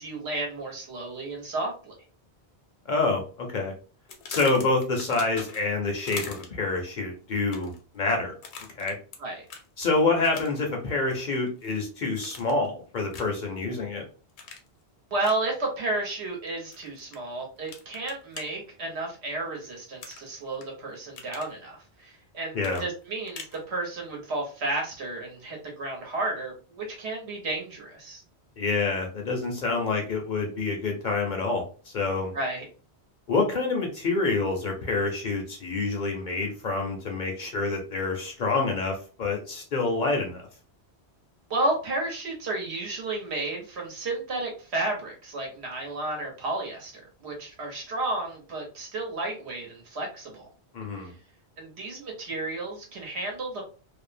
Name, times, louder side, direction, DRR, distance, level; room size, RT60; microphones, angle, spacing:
voice 1, 0.0-1.9 9.2-9.4 15.1-28.2 32.3-32.6 41.5-50.5 51.0-51.1 51.6-53.6, right 2 dB, 75° right, 0 dB, 1.2 m, -32 dB
voice 2, 2.9-3.7 4.3-8.3 8.8-9.0 9.8-14.0 22.5-22.8 28.6-32.3 33.3-40.4 50.7-51.1, left 3 dB, 55° left, 2 dB, 0.6 m, -27 dB
sound 1, 4.1-5.8 6.1-6.7 7.4-7.8 8.4-9.2 9.5-9.7 10.3-10.7 11.1-11.8 12.2-12.7 13.1-13.4 14.4-14.7 15.2-15.4 16.7-17.2 17.7-18.4 20.0-20.7 21.0-21.5 22.6-23.6, left 5 dB, 80° left, 0.9 m, -41 dB
2.6 x 2.0 x 2.5 m, 0.37 s
omnidirectional pair, 1.1 m